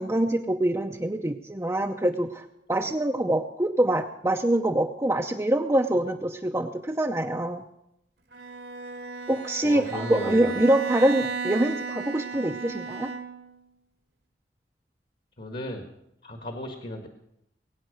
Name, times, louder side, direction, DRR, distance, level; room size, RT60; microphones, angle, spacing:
voice 1, 0.0-7.6 9.3-13.1, right 1 dB, 15° right, 3 dB, 0.6 m, -25 dB
Bowed string instrument, 8.3-13.6, right 5 dB, 80° right, 2.1 m, -35 dB
voice 2, 9.6-10.5 15.4-15.9 16.2-17.1, left 1 dB, 50° left, 4 dB, 1.6 m, -35 dB
21.5 x 9.3 x 6.5 m, 0.82 s
head